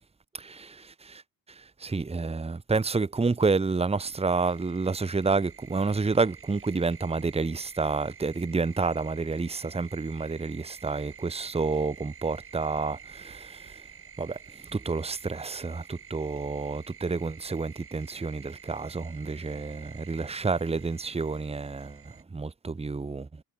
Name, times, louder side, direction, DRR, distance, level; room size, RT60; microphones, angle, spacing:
voice 1, 0.3-1.2 1.5-13.8 14.2-23.4, right 4 dB, 15° right, 1.5 m, -29 dB
sound 1, 3.9-22.2, right 6 dB, 35° right, 2.6 m, -49 dB
wide cardioid pair, 165°, 36 cm